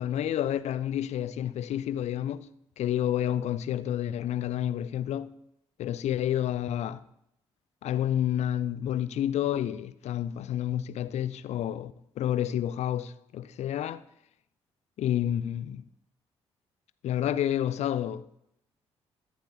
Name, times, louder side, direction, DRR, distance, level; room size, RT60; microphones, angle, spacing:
voice 1, 0.0-2.5 2.8-5.3 5.8-7.0 7.8-14.0 15.0-15.8 17.0-18.2, left 11 dB, 55° left, 0.6 m, -29 dB
21.5 x 7.2 x 2.8 m
figure-of-eight pair, 40°, 14 cm